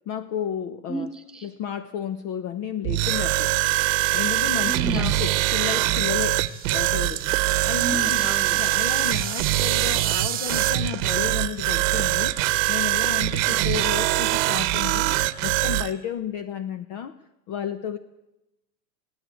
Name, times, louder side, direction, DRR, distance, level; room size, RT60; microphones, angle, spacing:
voice 1, 0.1-1.1 1.4-3.5 4.1-7.2 7.6-8.2 8.6-12.4 12.7-17.1 17.5-18.0, left 9 dB, 35° left, 13 dB, 0.8 m, -32 dB
voice 2, 0.9-1.5 4.6-5.1 7.7-8.6 13.5-13.9, right 2 dB, ahead, 6 dB, 3.1 m, -33 dB
sound 1, 2.8-15.9, right 17 dB, 50° right, 1.1 m, -23 dB
sound 2, 5.7-10.7, right 11 dB, 20° right, 1.2 m, -33 dB
sound 3, 6.2-6.4 6.7-6.9 7.2-7.4 7.6-7.8 8.1-8.2 9.4-9.7 10.1-10.4 10.7-11.4 11.8-12.5 12.9-13.5 13.9-14.1, right 20 dB, 65° right, 0.7 m, -34 dB
18.0 x 17.5 x 9.2 m, 0.96 s
supercardioid pair, 145°, 46 cm